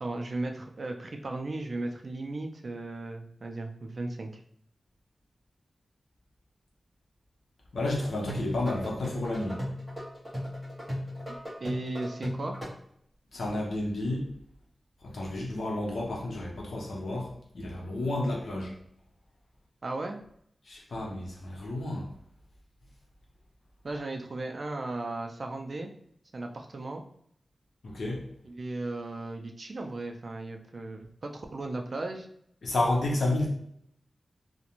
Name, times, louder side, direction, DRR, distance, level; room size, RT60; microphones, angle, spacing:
voice 1, 0.0-4.3 11.3-12.6 19.8-20.2 23.8-25.9 26.3-27.0 28.4-32.3, right 2 dB, 50° right, 3 dB, 0.3 m, -36 dB
voice 2, 7.7-9.6 13.3-14.3 15.0-18.7 20.7-22.1 27.8-28.2 32.6-33.5, left 2 dB, 75° left, -1 dB, 0.7 m, -31 dB
sound 1, 8.1-12.7, equal, 5° right, 1.2 m, -36 dB
2.4 x 2.1 x 2.9 m, 0.69 s
wide cardioid pair, 115°, 0 cm